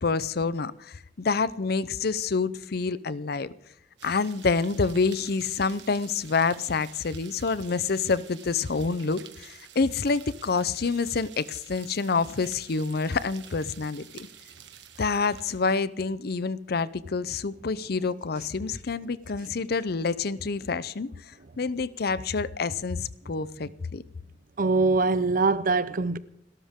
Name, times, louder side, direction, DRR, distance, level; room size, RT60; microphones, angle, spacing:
voice 1, 0.0-3.5 4.0-14.3 15.0-21.1 21.6-24.0, left 4 dB, 60° left, 0.6 m, -27 dB
sound 1, 4.0-15.7, right 9 dB, 80° right, 1.8 m, -50 dB
voice 2, 24.6-26.2, right 3 dB, 50° right, 0.8 m, -23 dB
29.5 x 13.0 x 3.7 m
head